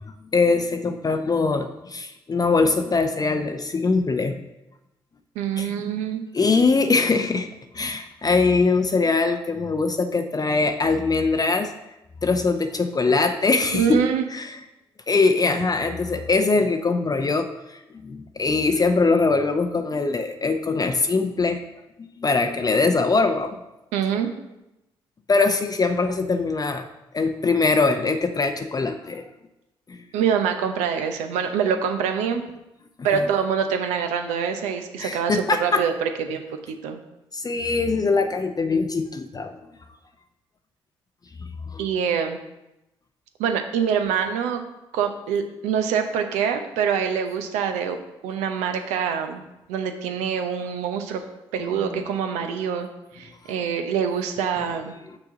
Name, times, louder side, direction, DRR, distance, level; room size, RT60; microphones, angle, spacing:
voice 1, 0.3-4.4 5.6-5.7 6.3-7.5 7.7-11.7 12.2-14.6 15.1-21.6 22.2-23.6 25.3-26.9 27.1-29.2 29.9-30.0 33.1-33.3 35.0-35.8 37.3-39.6 41.7-41.9, left 3 dB, 30° left, 6 dB, 0.6 m, -22 dB
voice 2, 5.4-6.2 13.7-14.2 23.9-24.3 30.1-32.5 33.0-37.0 41.8-42.4 43.4-44.6 44.9-48.0 48.2-49.4 49.7-51.2 51.5-52.9 53.1-54.9, right 7 dB, 75° right, 6 dB, 0.7 m, -25 dB
6.0 x 5.8 x 3.8 m, 0.93 s
hypercardioid pair, 40°, 12 cm